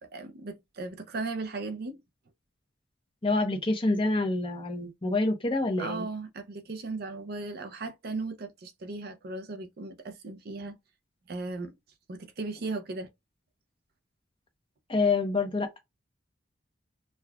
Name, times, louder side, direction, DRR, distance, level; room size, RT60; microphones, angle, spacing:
voice 1, 0.0-2.0 5.8-10.8 11.3-11.8 12.1-13.1, right 3 dB, 50° right, 0.5 m, -37 dB
voice 2, 3.2-6.1 14.9-15.8, left 3 dB, 25° left, 0.8 m, -27 dB
6.2 x 2.3 x 2.3 m
head